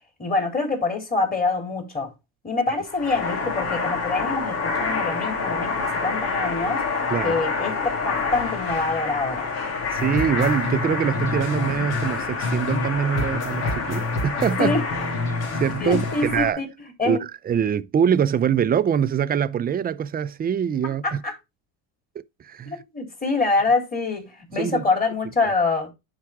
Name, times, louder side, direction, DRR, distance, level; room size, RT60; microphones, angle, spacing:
voice 1, 0.2-2.1 2.4-6.8 7.2-9.5 14.6-14.8 15.8-16.7 17.0-17.2 20.8-21.3 22.7-25.9, left 3 dB, 20° left, 3.5 m, -25 dB
sound 1, 2.9-16.5, left 4 dB, 85° left, 2.9 m, -28 dB
voice 2, 9.9-14.8 15.5-16.6 17.0-17.2 17.4-21.2 22.4-22.8 24.6-24.8, right 8 dB, 25° right, 0.5 m, -23 dB
sound 2, 10.0-12.9 13.2-16.4, left 2 dB, 65° left, 2.5 m, -29 dB
10.0 x 4.8 x 3.5 m
cardioid pair, 115°, 39 cm